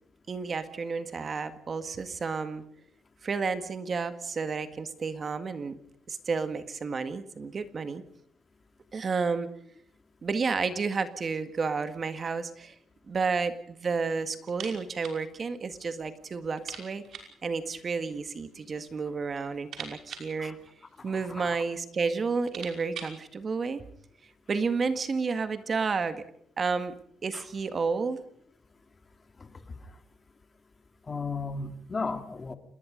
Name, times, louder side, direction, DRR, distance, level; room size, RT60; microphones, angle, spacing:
voice 1, 0.3-2.6 3.2-5.7 6.1-8.0 8.9-9.5 10.2-12.8 13.1-17.0 17.4-20.6 21.0-23.8 24.5-26.2 26.6-26.9 27.2-28.2, right 4 dB, 35° right, 10 dB, 1.9 m, -31 dB
sound 1, 14.5-15.2 15.5-15.6 15.9-16.0 16.5-17.4 18.3-18.9 19.3-21.2 21.9-22.0 22.3-23.2, right 7 dB, 60° right, 5.6 m, -44 dB
voice 2, 31.1-32.6, left 4 dB, 25° left, 8 dB, 2.3 m, -34 dB
28.0 x 21.0 x 5.2 m, 0.65 s
cardioid pair, 125°, 0 cm